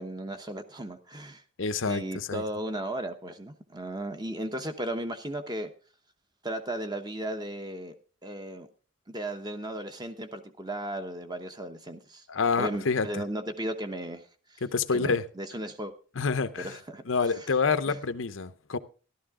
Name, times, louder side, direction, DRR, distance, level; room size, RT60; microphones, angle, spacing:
voice 1, 0.0-1.4 1.9-5.7 6.4-7.9 8.2-8.7 9.1-12.3 12.6-14.6 14.9-15.9 16.6-17.0 17.3-17.5 17.9-18.0, right 1 dB, 20° right, 8 dB, 0.9 m, -35 dB
voice 2, 1.6-2.4 12.3-13.2 14.6-15.2 16.2-16.7 17.1-18.8, left 5 dB, 75° left, 12 dB, 0.7 m, -27 dB
13.5 x 12.0 x 3.6 m, 0.38 s
head